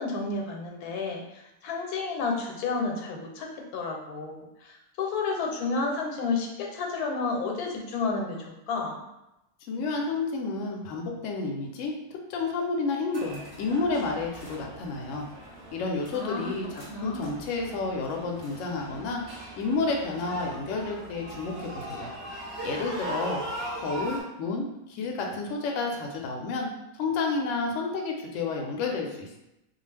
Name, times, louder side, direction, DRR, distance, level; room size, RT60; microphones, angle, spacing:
voice 1, 0.0-9.0 16.1-17.3, left 4 dB, 85° left, 1 dB, 1.1 m, -31 dB
voice 2, 9.7-11.9 12.3-15.3 15.7-22.1 22.6-23.4 23.7-26.7 27.0-29.4, left 3 dB, 65° left, 1 dB, 0.8 m, -30 dB
sound 1, 13.1-24.2, right 1 dB, 30° right, 0.6 m, -40 dB
2.4 x 2.3 x 3.2 m, 0.90 s
omnidirectional pair, 1.6 m